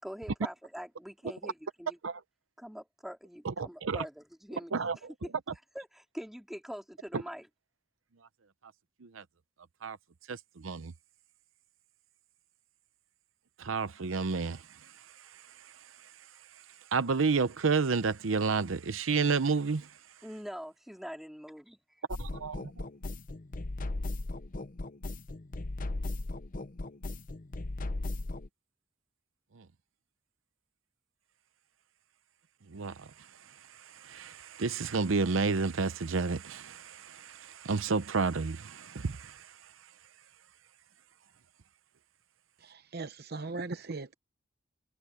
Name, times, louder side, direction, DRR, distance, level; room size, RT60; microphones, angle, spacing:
voice 1, 0.0-2.0 2.6-4.7 5.7-7.5 20.2-21.8, equal, ahead, 4.0 m, -44 dB
voice 2, 3.4-4.0 4.7-5.1 9.0-9.2 9.8-10.0 10.3-10.9 13.6-14.9 15.2-15.7 16.9-19.9 22.2-22.6 29.6-29.7 32.7-39.7, right 4 dB, 80° right, 0.7 m, -31 dB
sound 1, 22.1-28.5, left 2 dB, 45° left, 0.7 m, -37 dB
voice 3, 42.6-44.1, right 3 dB, 55° right, 0.8 m, -39 dB
head